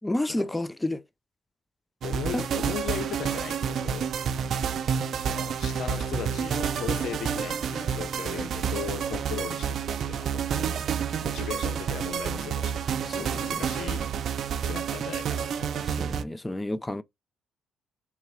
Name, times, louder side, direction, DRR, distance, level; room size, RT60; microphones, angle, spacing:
voice 1, 0.0-1.0 2.3-2.4 13.1-13.3 16.0-17.0, left 1 dB, 15° left, 0.4 m, -30 dB
voice 2, 2.0-4.1 5.2-10.9 11.2-14.1 14.6-16.1, left 9 dB, 70° left, 0.5 m, -38 dB
sound 1, 2.0-16.2, right 7 dB, 65° right, 0.5 m, -29 dB
3.7 x 3.1 x 3.1 m
cardioid pair, 90°, 0 cm